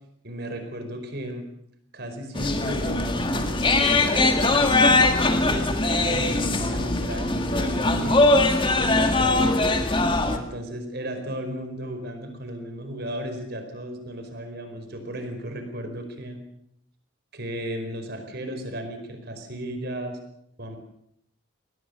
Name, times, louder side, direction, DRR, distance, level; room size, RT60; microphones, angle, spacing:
voice 1, 0.2-1.5 1.9-8.3 8.7-9.7 10.3-16.4 17.3-20.2 20.6-20.8, right 1 dB, 50° right, 6 dB, 4.9 m, -35 dB
sound 1, 2.4-10.4, left 2 dB, 25° left, 1.9 m, -21 dB
22.0 x 19.0 x 6.8 m, 0.74 s
head